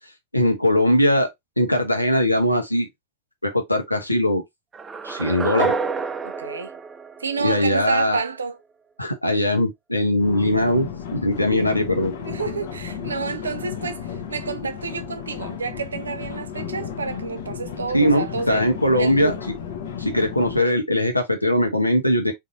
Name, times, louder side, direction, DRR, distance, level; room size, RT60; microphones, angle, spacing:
voice 1, 0.3-1.3 1.6-2.9 3.4-4.4 5.0-5.7 7.4-8.2 9.0-12.1 17.9-19.3 20.0-22.3, left 1 dB, 85° left, 0.9 m, -20 dB
sound 1, 4.7-7.8, right 4 dB, 15° right, 0.3 m, -28 dB
voice 2, 6.2-6.7 7.2-8.6 12.2-19.4, right 5 dB, 70° right, 0.6 m, -30 dB
sound 2, 10.2-20.6, left 8 dB, 55° left, 0.8 m, -33 dB
3.9 x 2.7 x 2.5 m
figure-of-eight pair, 90°, 0 cm